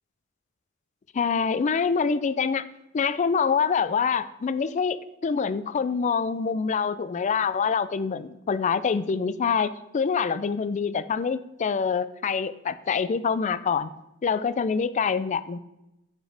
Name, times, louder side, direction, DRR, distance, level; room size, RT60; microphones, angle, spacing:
voice 1, 1.1-2.6 2.9-13.9 14.2-15.6, left 6 dB, 35° left, 15 dB, 0.3 m, -25 dB
9.7 x 6.3 x 3.4 m, 0.93 s
head